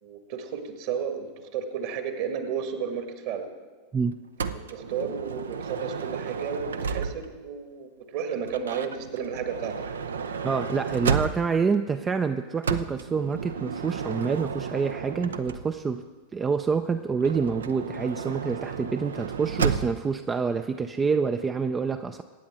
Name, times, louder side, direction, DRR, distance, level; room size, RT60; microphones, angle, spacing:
voice 1, 0.0-3.4 4.7-9.7, right 7 dB, 50° right, 6 dB, 1.8 m, -32 dB
Motor vehicle (road) / Sliding door, 4.4-7.5 8.4-11.7 12.6-15.9 17.2-20.1, right 6 dB, 65° right, 0.6 m, -32 dB
voice 2, 10.4-16.0 16.3-22.2, right 5 dB, 20° right, 8 dB, 0.5 m, -27 dB
23.0 x 9.5 x 3.8 m, 1.4 s
figure-of-eight pair, 90°, 0 cm